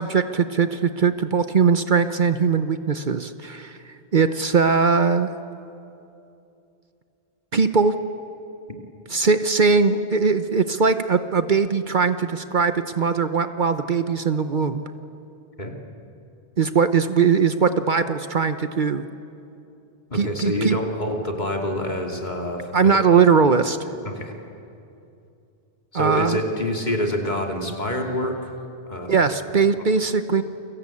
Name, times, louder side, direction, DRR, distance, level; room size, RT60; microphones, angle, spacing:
voice 1, 0.0-3.8 4.1-5.3 7.5-7.9 9.1-14.8 16.6-19.0 20.1-20.8 22.7-23.9 25.9-26.4 29.1-30.4, right 5 dB, 50° right, 10 dB, 1.0 m, -20 dB
voice 2, 20.1-23.1 24.0-24.3 25.9-28.6 28.9-29.2, left 1 dB, 45° left, 2 dB, 2.8 m, -27 dB
29.5 x 23.5 x 8.5 m, 2.7 s
omnidirectional pair, 1.1 m